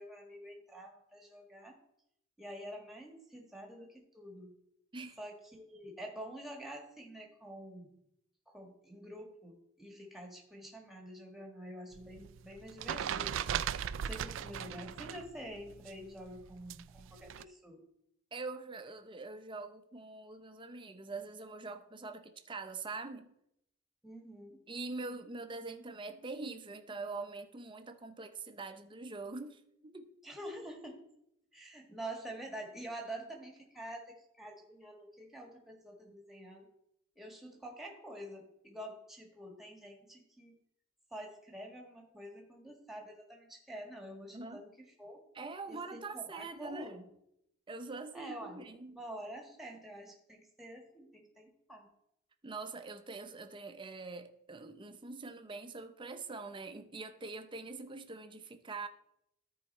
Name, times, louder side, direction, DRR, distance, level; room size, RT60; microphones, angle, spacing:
voice 1, 0.0-1.8 2.4-4.5 5.2-8.0 8.5-13.4 14.0-17.8 24.0-24.6 30.2-31.0 31.5-36.7 37.1-40.6 41.1-45.2 45.7-47.0 48.1-51.9, right 1 dB, ahead, 1.5 m, -47 dB
sound 1, 11.9-15.3 15.5-17.4, right 8 dB, 65° right, 0.3 m, -38 dB
voice 2, 18.3-23.3 24.7-30.1 44.3-44.7 45.3-46.9 47.7-49.0 52.4-58.9, right 3 dB, 25° right, 0.6 m, -44 dB
13.0 x 4.8 x 4.2 m
head